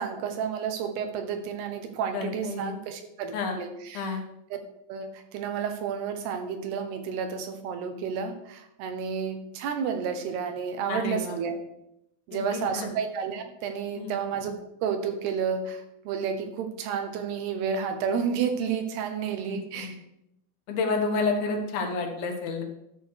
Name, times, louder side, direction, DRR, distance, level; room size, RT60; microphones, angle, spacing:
voice 1, 0.0-4.2 4.9-11.5 12.3-14.5 14.8-20.0, right 6 dB, 90° right, 6 dB, 3.2 m, -31 dB
voice 2, 2.1-2.7 3.3-3.6 3.9-4.2 10.9-11.4 12.3-12.6 14.0-14.1 19.5-19.9 20.7-22.6, left 4 dB, 70° left, 3 dB, 3.0 m, -30 dB
12.5 x 6.6 x 4.8 m, 0.83 s
omnidirectional pair, 4.6 m